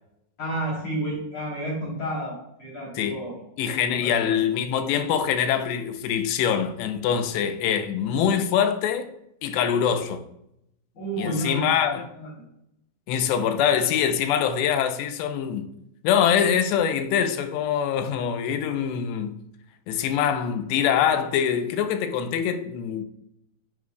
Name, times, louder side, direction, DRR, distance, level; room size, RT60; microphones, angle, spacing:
voice 1, 0.4-3.3 3.9-4.3 10.9-11.7 12.2-12.3, right 1 dB, 40° left, 3.9 m, -30 dB
voice 2, 3.6-9.2 9.4-10.2 11.2-12.1 13.1-15.7 16.0-19.4 19.9-23.1, left 8 dB, 85° left, 2.9 m, -24 dB
9.8 x 7.4 x 2.3 m
omnidirectional pair, 4.9 m